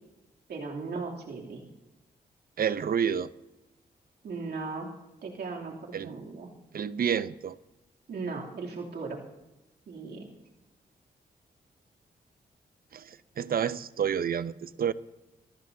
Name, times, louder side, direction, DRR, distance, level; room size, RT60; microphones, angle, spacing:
voice 1, 0.5-1.6 4.2-4.9 5.2-6.5 8.1-9.2 9.9-10.3, right 4 dB, 80° right, -1 dB, 2.9 m, -37 dB
voice 2, 2.6-3.3 5.9-6.1 6.7-7.6 12.9-14.9, right 8 dB, 60° right, 16 dB, 0.7 m, -29 dB
27.5 x 15.0 x 2.8 m, 0.97 s
cardioid pair, 55°, 17 cm